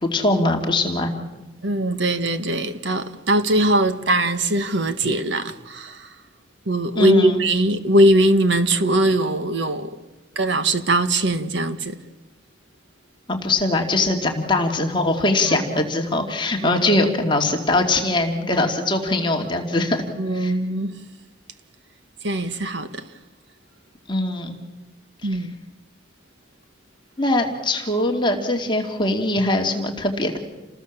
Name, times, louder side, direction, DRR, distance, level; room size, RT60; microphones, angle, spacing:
voice 1, 0.0-1.1 6.9-7.4 13.3-20.0 20.3-20.5 24.1-24.6 27.2-30.4, left 2 dB, 25° left, 2.4 m, -21 dB
voice 2, 1.6-6.1 6.6-10.0 10.3-12.0 15.5-15.6 16.6-16.8 20.2-21.0 22.2-23.1 25.2-25.5, right 1 dB, 75° right, 1.6 m, -21 dB
28.5 x 19.5 x 7.4 m
head